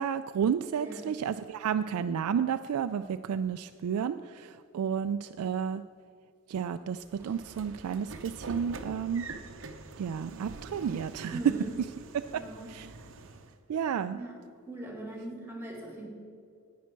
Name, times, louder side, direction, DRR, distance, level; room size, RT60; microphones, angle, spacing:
voice 1, 0.0-5.8 6.5-9.3 10.0-11.4 12.3-12.4 12.7-12.9 13.7-14.2, right 7 dB, 85° right, 10 dB, 0.3 m, -31 dB
Train / Sliding door, 7.0-13.6, right 3 dB, 60° right, 0.7 m, -45 dB
voice 2, 11.3-11.8 12.2-12.7 14.1-14.4 14.7-16.1, right 1 dB, 10° right, -1 dB, 2.1 m, -41 dB
10.5 x 9.4 x 4.5 m, 2.2 s
head